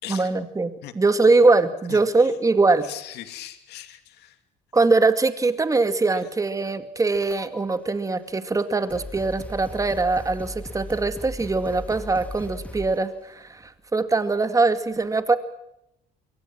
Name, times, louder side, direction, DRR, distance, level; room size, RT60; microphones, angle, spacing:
voice 1, 0.1-2.9 4.7-15.4, right 3 dB, 20° right, 10 dB, 2.3 m, -22 dB
voice 2, 1.9-2.4 2.8-4.4 6.1-6.3, left 13 dB, 80° left, 9 dB, 2.7 m, -40 dB
sound 1, 7.1-7.8 8.5-8.6 8.9-13.1, left 1 dB, 10° left, 2.4 m, -38 dB
26.5 x 23.0 x 6.2 m, 0.81 s
cardioid pair, 110°, 17 cm